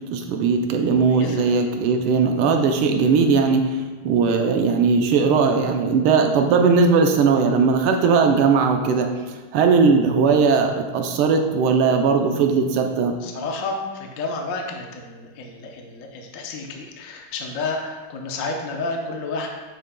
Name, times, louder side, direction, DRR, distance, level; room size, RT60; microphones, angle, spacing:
voice 1, 0.1-3.8 4.0-9.1 9.5-13.2, right 5 dB, 80° right, 4 dB, 1.6 m, -18 dB
voice 2, 1.1-1.6 13.2-19.5, left 3 dB, 65° left, 1 dB, 0.8 m, -31 dB
7.7 x 6.8 x 2.2 m, 1.3 s
omnidirectional pair, 2.4 m